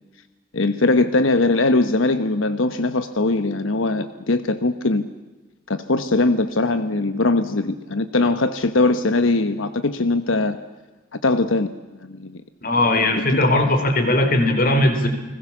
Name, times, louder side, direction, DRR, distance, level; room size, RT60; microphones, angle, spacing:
voice 1, 0.5-5.0 5.7-10.6 11.1-11.7 12.0-12.4 13.5-13.8, left 2 dB, 90° left, 10 dB, 1.1 m, -21 dB
voice 2, 12.6-15.1, left 1 dB, 45° left, 7 dB, 3.8 m, -18 dB
30.0 x 20.5 x 7.3 m, 1.2 s
head